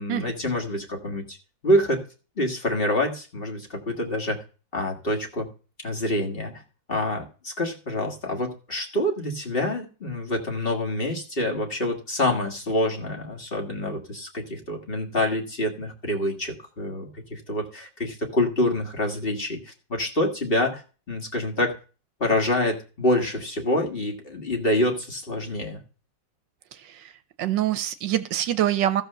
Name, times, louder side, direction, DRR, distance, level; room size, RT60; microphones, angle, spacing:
voice 1, 0.0-1.4 1.6-2.0 2.4-4.4 4.7-5.5 5.8-6.6 6.9-20.8 21.1-21.8 22.2-25.8, left 1 dB, 30° left, 0 dB, 1.8 m, -26 dB
voice 2, 26.7-27.1 27.4-29.0, right 12 dB, 75° right, 12 dB, 1.4 m, -25 dB
14.0 x 4.9 x 6.6 m, 0.36 s
omnidirectional pair, 2.1 m